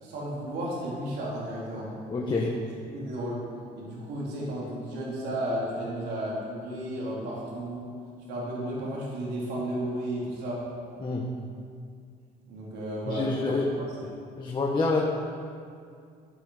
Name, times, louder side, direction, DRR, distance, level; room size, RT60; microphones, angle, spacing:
voice 1, 0.0-1.9 2.2-2.4 2.9-3.4 3.8-7.9 8.3-10.6 12.5-13.6, right 1 dB, 80° right, -5 dB, 3.7 m, -33 dB
voice 2, 2.1-2.5 11.0-11.3 13.1-13.6 14.0-15.0, left 3 dB, 25° left, -3 dB, 1.5 m, -28 dB
15.0 x 9.2 x 5.1 m, 2.3 s
cardioid pair, 110°, 17 cm